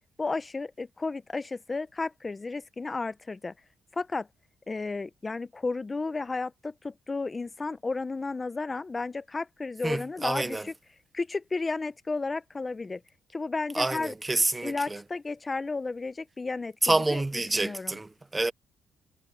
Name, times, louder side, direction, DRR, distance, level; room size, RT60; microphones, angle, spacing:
voice 1, 0.2-3.5 3.9-4.3 4.7-10.7 11.1-13.0 13.3-14.1 14.6-16.8 17.1-17.2 17.5-18.0, left 3 dB, 25° left, 0.8 m, -33 dB
voice 2, 9.8-10.7 13.7-15.0 16.8-18.5, right 2 dB, 15° right, 0.6 m, -28 dB
cardioid pair, 90°, 0 cm